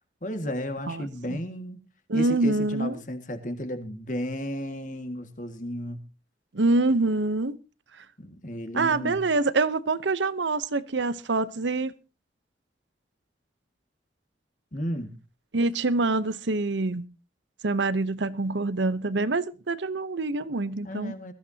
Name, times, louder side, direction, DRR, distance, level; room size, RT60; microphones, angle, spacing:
voice 1, 0.2-1.8 2.1-6.0 8.2-9.3 14.7-15.2 20.8-21.3, equal, 45° left, 2.0 m, -33 dB
voice 2, 0.9-1.4 2.1-2.9 6.5-7.6 8.7-11.9 15.5-17.1 17.6-21.1, right 3 dB, 90° right, 0.9 m, -25 dB
21.0 x 14.0 x 2.8 m
head